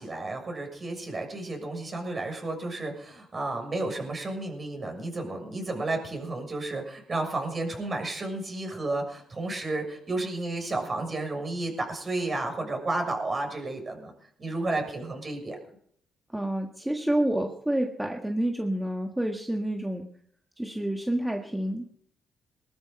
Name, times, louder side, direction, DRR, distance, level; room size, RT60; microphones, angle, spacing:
voice 1, 0.0-14.1 14.4-15.5, right 2 dB, 35° right, 3 dB, 6.6 m, -32 dB
voice 2, 16.3-20.1 20.6-21.9, right 1 dB, 5° right, 2 dB, 1.6 m, -28 dB
21.0 x 12.0 x 5.4 m, 0.65 s
cardioid pair, 95°, 0 cm